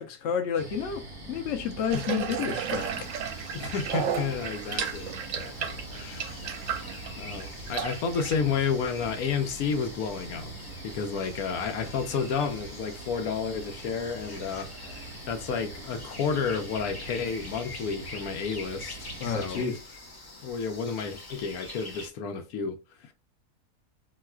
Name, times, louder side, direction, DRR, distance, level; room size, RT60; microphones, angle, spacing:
voice 1, 0.0-3.1 19.2-19.8, left 7 dB, 60° left, 0.9 m, -30 dB
sound 1, 0.6-19.6, right 2 dB, 30° right, 0.7 m, -43 dB
Water tap faucet / Bathtub (filling or washing), 1.9-8.4, right 8 dB, 70° right, 0.9 m, -33 dB
sound 2, 2.6-22.1, left 2 dB, 30° left, 0.4 m, -46 dB
voice 2, 3.5-6.4 7.2-10.5 10.8-15.0 15.3-19.7 20.4-23.1, left 6 dB, 80° left, 1.1 m, -31 dB
3.9 x 2.4 x 2.3 m
omnidirectional pair, 1.6 m